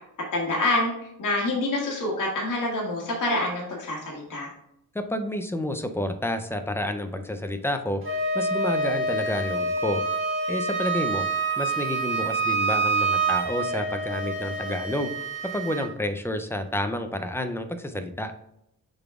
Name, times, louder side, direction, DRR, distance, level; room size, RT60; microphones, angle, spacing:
voice 1, 0.3-0.9 1.2-4.5, left 2 dB, 60° left, -3 dB, 1.6 m, -26 dB
voice 2, 4.9-8.0 8.3-10.0 10.5-11.3 11.6-15.1 15.5-18.3, left 1 dB, 5° left, 8 dB, 0.4 m, -29 dB
Wind instrument woodwind instrument, 8.0-15.9, right 3 dB, 35° right, 1.4 m, -27 dB
6.7 x 4.0 x 3.5 m, 0.78 s
wide cardioid pair, 150°, 36 cm